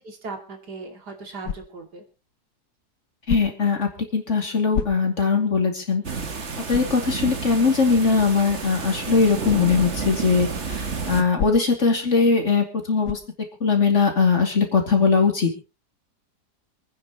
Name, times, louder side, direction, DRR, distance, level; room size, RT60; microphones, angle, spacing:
voice 1, 0.0-2.0, right 3 dB, 80° right, 3 dB, 3.1 m, -38 dB
sound 1, 1.4-2.0 3.2-3.8 4.7-5.3 5.8-5.9 6.7-7.0 9.5-9.7 11.4-11.9 13.0-13.4, left 7 dB, 80° left, 1.5 m, -30 dB
voice 2, 3.3-6.0 6.7-13.2 13.6-15.7, left 5 dB, 45° left, 3 dB, 2.9 m, -20 dB
sound 2, 6.0-11.2, right 5 dB, 45° right, 1.8 m, -30 dB
27.5 x 9.8 x 3.0 m, 0.31 s
omnidirectional pair, 1.7 m